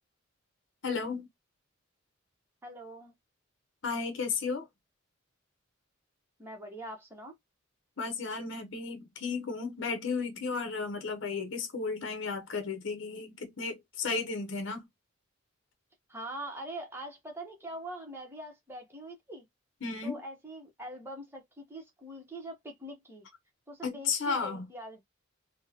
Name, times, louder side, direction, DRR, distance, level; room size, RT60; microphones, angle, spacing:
voice 1, 0.8-1.3 3.8-4.7 8.0-14.9 19.8-20.2 23.8-24.7, left 4 dB, 60° left, 0.8 m, -34 dB
voice 2, 2.6-3.1 6.4-7.3 16.1-19.5 20.0-23.3 23.7-25.0, right 1 dB, 10° right, 0.9 m, -43 dB
3.5 x 2.1 x 2.8 m
head